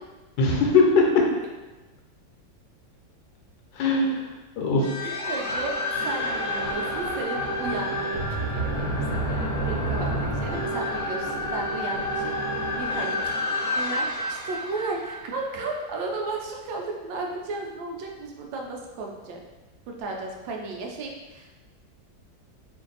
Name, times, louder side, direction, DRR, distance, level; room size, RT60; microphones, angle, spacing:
voice 1, 0.4-1.2 3.7-4.9, left 3 dB, 80° left, -1 dB, 1.4 m, -21 dB
sound 1, 4.8-16.0, equal, 60° left, 1.1 m, -29 dB
voice 2, 5.0-8.2 8.5-12.3 12.7-19.4 19.9-21.5, right 3 dB, 80° right, 1 dB, 1.3 m, -34 dB
3.2 x 2.6 x 3.9 m, 1.1 s
omnidirectional pair, 2.0 m